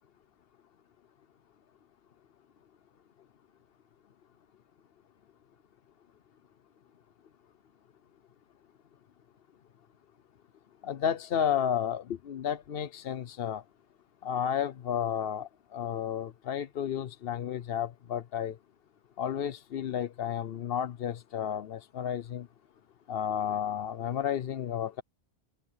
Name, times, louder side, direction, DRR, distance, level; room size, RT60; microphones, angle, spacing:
voice 1, 10.8-13.6 14.2-18.6 19.2-22.5 23.1-25.0, left 9 dB, 65° left, 0.9 m, -32 dB
omnidirectional pair, 1.1 m